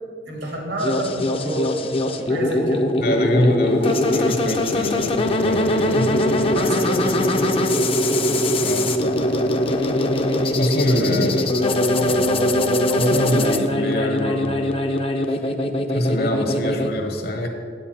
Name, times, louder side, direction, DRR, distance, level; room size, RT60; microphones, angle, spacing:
voice 1, 0.3-1.7 2.3-2.9 6.5-7.6 10.9-11.3, right 1 dB, 90° right, -1 dB, 2.5 m, -28 dB
sound 1, 0.8-16.9, left 1 dB, 35° left, 0.6 m, -21 dB
voice 2, 3.0-6.1 8.6-8.9 10.6-11.4 11.9-12.3 13.0-14.6 15.9-17.5, left 1 dB, 60° left, 4 dB, 1.2 m, -24 dB
9.3 x 8.3 x 4.4 m, 2.3 s
head